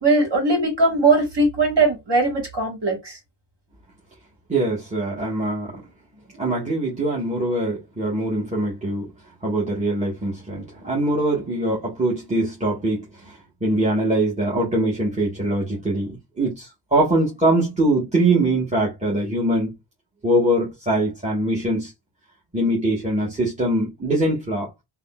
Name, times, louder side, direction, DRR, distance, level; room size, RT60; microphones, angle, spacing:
voice 1, 0.0-3.2, right 3 dB, 55° right, 1.7 m, -20 dB
voice 2, 4.5-5.8 6.4-9.1 9.4-19.8 20.2-21.9 22.5-24.7, right 1 dB, 15° right, 1.2 m, -23 dB
3.5 x 2.2 x 2.3 m
wide cardioid pair, 55°, 50 cm